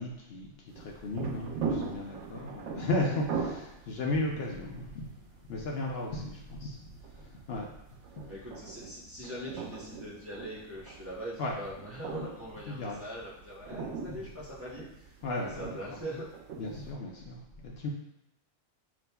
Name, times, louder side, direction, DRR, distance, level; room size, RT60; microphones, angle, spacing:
voice 1, 0.0-7.8 8.1-8.3 11.4-11.6 12.7-13.0 14.1-14.2 15.2-15.8 16.6-17.9, left 2 dB, 65° left, -1 dB, 0.8 m, -35 dB
sound 1, 0.7-16.9, right 5 dB, 85° right, 0.9 m, -41 dB
voice 2, 8.2-16.3, equal, 15° right, -8 dB, 0.9 m, -42 dB
7.2 x 2.5 x 2.2 m, 0.88 s
omnidirectional pair, 1.2 m